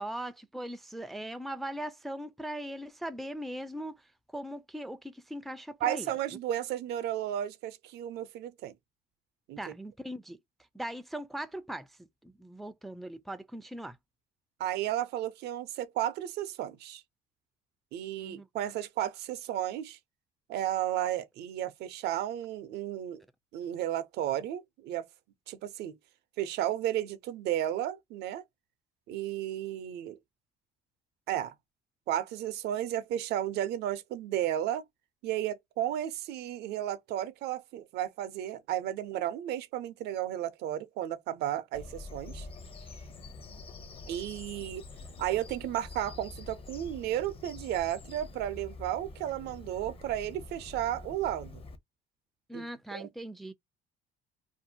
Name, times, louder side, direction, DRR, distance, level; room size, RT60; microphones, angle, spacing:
voice 1, 0.0-4.0 4.3-6.1 9.6-10.4 10.7-14.0 18.2-18.5 43.5-43.6 52.5-53.5, right 1 dB, ahead, 0.3 m, -40 dB
voice 2, 5.8-8.7 9.5-9.6 14.6-17.0 17.9-20.0 20.5-23.2 23.5-25.1 25.5-26.0 26.4-28.4 29.1-30.2 31.3-31.5 32.1-34.8 35.2-42.5 44.1-44.9 45.2-51.6 52.5-52.6 52.9-53.1, right 12 dB, 80° right, 0.6 m, -33 dB
Bird vocalization bird call bird song, 41.7-51.8, left 3 dB, 35° left, 0.6 m, -46 dB
2.6 x 2.4 x 2.7 m
cardioid pair, 110°, 17 cm